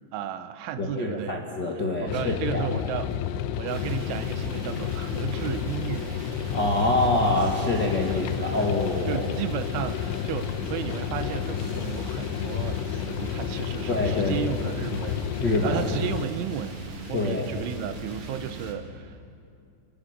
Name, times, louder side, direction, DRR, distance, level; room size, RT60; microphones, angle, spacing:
voice 1, 0.1-1.4 2.0-3.1 3.6-6.2 8.1-8.6 9.1-15.2 15.6-19.3, right 10 dB, 85° right, 10 dB, 3.4 m, -34 dB
voice 2, 0.8-2.7 6.5-9.2 13.9-14.5 15.4-15.8 17.1-17.5, left 2 dB, 60° left, -1 dB, 1.1 m, -25 dB
sound 1, 2.1-16.3, left 10 dB, 85° left, 3.1 m, -31 dB
sound 2, 3.7-18.7, right 2 dB, 40° right, 2.3 m, -40 dB
26.5 x 24.0 x 6.6 m, 2.5 s
omnidirectional pair, 5.3 m